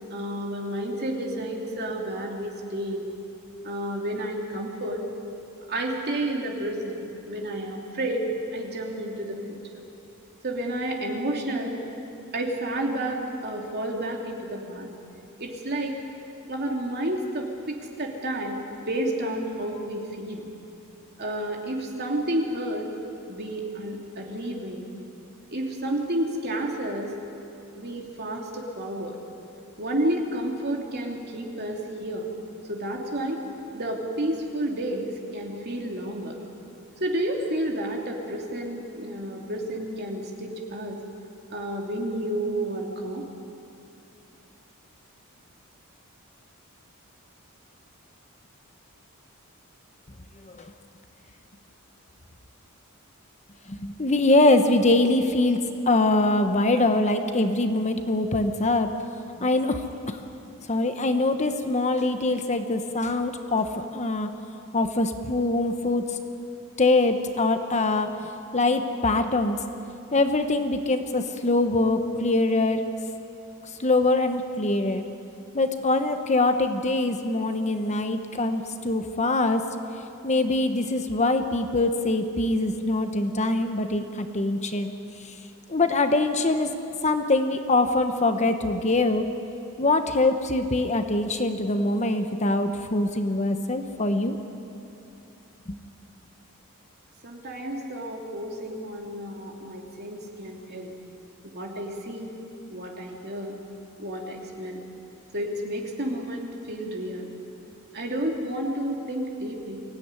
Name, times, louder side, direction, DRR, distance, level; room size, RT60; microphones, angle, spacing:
voice 1, 0.1-3.0 3.6-5.0 5.7-7.0 7.3-9.8 10.4-11.8 12.3-14.9 15.4-16.0 16.5-18.6 18.9-20.5 21.2-22.9 23.3-24.9 25.5-27.1 27.7-29.2 29.8-32.3 32.7-33.4 33.7-36.4 37.0-41.0 41.5-43.3 97.2-100.9 101.4-102.3 102.7-103.6 104.0-104.8 105.3-107.3 107.9-109.8, right 1 dB, 50° right, 1 dB, 2.9 m, -31 dB
voice 2, 53.7-55.6 55.9-58.9 59.4-60.2 60.7-64.3 64.7-66.2 66.8-68.2 68.5-69.6 70.1-72.8 73.8-75.0 75.5-79.6 80.2-84.9 85.2-85.4 85.7-86.7 87.0-89.3 89.8-94.4 95.7-95.8, left 2 dB, 30° left, 7 dB, 1.1 m, -23 dB
23.5 x 16.5 x 9.8 m, 2.8 s
head